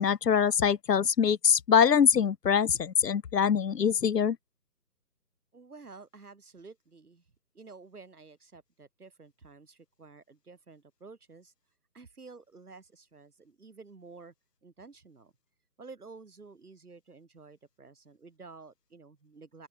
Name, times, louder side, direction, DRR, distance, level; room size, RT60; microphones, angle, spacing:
voice 1, 0.0-4.4, left 7 dB, 75° left, 0.7 m, -24 dB
voice 2, 5.5-7.2 7.5-11.5 11.9-14.3 14.6-15.3 15.8-19.7, right 4 dB, 65° right, 4.0 m, -51 dB
open air
figure-of-eight pair, 150°, 48 cm